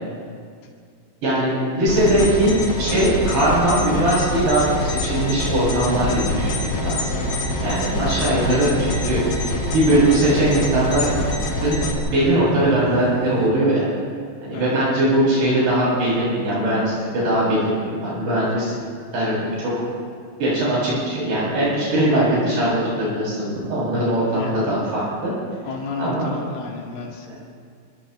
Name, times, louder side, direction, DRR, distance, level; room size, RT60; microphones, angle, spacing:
voice 1, 1.2-7.0 7.6-11.1 11.6-11.8 12.1-13.9 14.4-18.7 19.1-19.7 20.4-25.3 26.0-26.3 27.3-27.4, right 1 dB, 60° right, -8 dB, 9.6 m, -20 dB
sound 1, 1.9-11.9, left 2 dB, 40° left, 3.5 m, -25 dB
sound 2, 5.2-13.5, right 1 dB, 25° right, 4.2 m, -32 dB
voice 2, 14.5-14.9 18.6-18.9 24.3-24.5 25.6-27.3, left 4 dB, 85° left, -1 dB, 5.0 m, -33 dB
29.5 x 27.0 x 3.4 m, 2.1 s
omnidirectional pair, 5.5 m